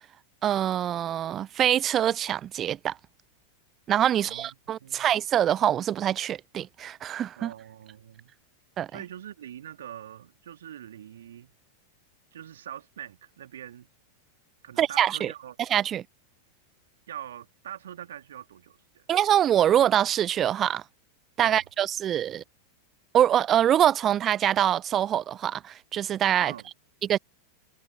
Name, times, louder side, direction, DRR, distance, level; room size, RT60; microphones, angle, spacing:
voice 1, 0.4-3.0 3.9-7.5 8.8-9.0 14.8-15.3 15.6-16.0 19.1-20.8 21.4-22.4 23.1-26.5 27.0-27.2, right 10 dB, 30° right, 0.7 m, -24 dB
voice 2, 4.1-4.5 4.8-5.2 7.4-8.3 8.9-11.5 12.3-13.9 14.6-15.6 17.1-19.1 21.4-21.6 26.4-26.7, right 10 dB, 60° right, 2.7 m, -43 dB
figure-of-eight pair, 90°, 0 cm